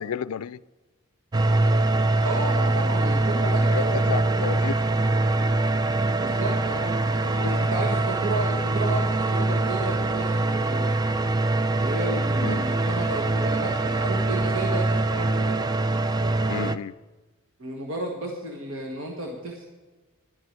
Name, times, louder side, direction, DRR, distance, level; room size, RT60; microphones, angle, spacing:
voice 1, 0.0-0.6 3.4-4.8 7.4-7.6 12.4-12.7 16.5-16.9, left 7 dB, 90° left, 0.4 m, -32 dB
sound 1, 1.3-16.8, right 2 dB, 20° right, 0.4 m, -23 dB
voice 2, 2.2-4.6 6.1-11.0 11.7-15.6 17.6-19.6, right 2 dB, 65° right, 1.5 m, -33 dB
11.0 x 7.7 x 9.5 m
head